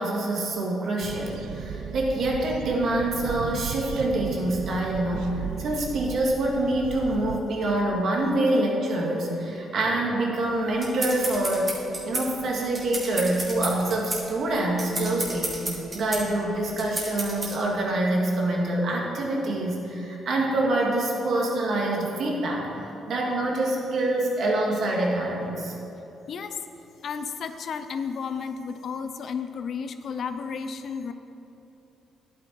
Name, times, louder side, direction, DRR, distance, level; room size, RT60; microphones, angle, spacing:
voice 1, 0.0-11.7 12.0-15.6 15.9-22.7 23.1-25.7, right 1 dB, 60° right, -1 dB, 2.1 m, -26 dB
sound 1, 1.0-7.4, right 8 dB, 90° right, 0.4 m, -36 dB
sound 2, 10.4-17.6, right 2 dB, 30° right, 2.5 m, -32 dB
voice 2, 26.3-26.6 27.0-31.1, left 6 dB, 60° left, 9 dB, 0.6 m, -32 dB
10.5 x 9.1 x 4.7 m, 3.0 s
cardioid pair, 90°, 0 cm